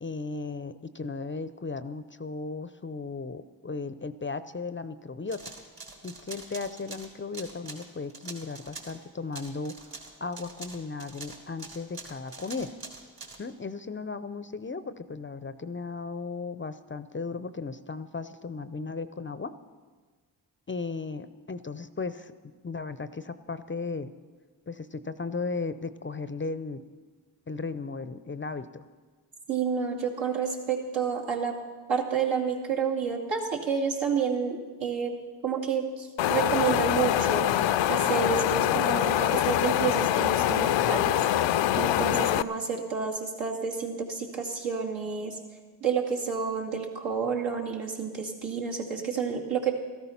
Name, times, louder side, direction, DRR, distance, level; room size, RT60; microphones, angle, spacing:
voice 1, 0.0-5.5 6.0-9.7 10.2-12.7 13.4-19.5 20.7-22.3 22.6-24.1 24.7-26.8 27.5-28.8, left 4 dB, 25° left, 13 dB, 0.6 m, -36 dB
sound 1, 5.3-9.0 9.3-13.4, right 3 dB, 45° right, 3.3 m, -44 dB
voice 2, 29.5-31.5 31.9-35.2 35.4-41.2 41.8-45.4 45.8-49.7, right 6 dB, 70° right, -2 dB, 2.4 m, -30 dB
Wind, 36.2-42.4, left 12 dB, 70° left, 0.6 m, -24 dB
13.5 x 12.5 x 5.7 m, 1.4 s
supercardioid pair, 45°, 48 cm